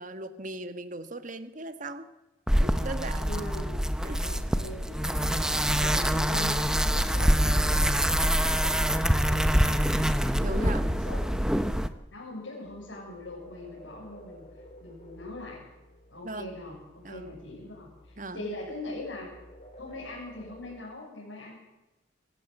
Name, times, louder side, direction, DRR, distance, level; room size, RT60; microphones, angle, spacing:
voice 1, 0.0-2.1 2.5-3.3 4.0-4.2 5.7-6.1 10.4-10.8 16.2-16.5 17.0-17.3 18.2-18.5, right 2 dB, 45° right, 10 dB, 1.5 m, -38 dB
sound 1, 2.5-11.9, equal, 5° right, 1.0 m, -25 dB
voice 2, 3.2-3.8 4.2-10.2 10.5-11.7 12.1-15.7 16.1-19.3 19.8-21.5, left 2 dB, 85° left, -4 dB, 7.2 m, -42 dB
sound 2, 12.6-20.8, equal, 35° left, 4.1 m, -52 dB
25.5 x 15.0 x 8.2 m, 1.0 s
head